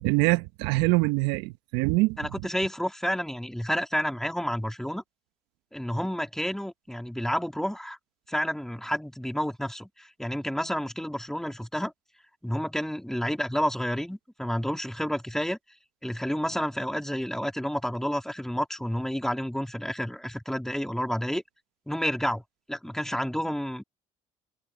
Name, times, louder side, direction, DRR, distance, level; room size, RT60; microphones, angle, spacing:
voice 1, 0.0-2.2, right 23 dB, 75° right, 1.4 m, -24 dB
voice 2, 2.2-5.0 5.7-8.0 8.3-11.9 12.4-15.6 16.0-21.4 21.9-22.4 22.7-23.8, equal, 5° left, 3.2 m, -30 dB
hypercardioid pair, 60°, 17 cm